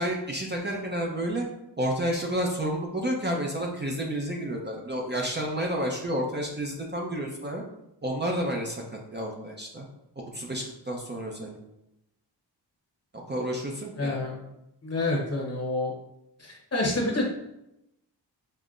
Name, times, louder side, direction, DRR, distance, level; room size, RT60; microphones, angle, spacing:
voice 1, 0.0-1.5 1.8-7.6 8.0-8.8 9.1-9.8 10.3-11.6 13.1-14.2, equal, 25° right, -1 dB, 0.6 m, -30 dB
voice 2, 14.0-14.4 14.8-15.9 16.4-17.2, left 2 dB, 35° left, -1 dB, 1.0 m, -28 dB
5.4 x 2.1 x 2.4 m, 0.85 s
cardioid pair, 60°, 42 cm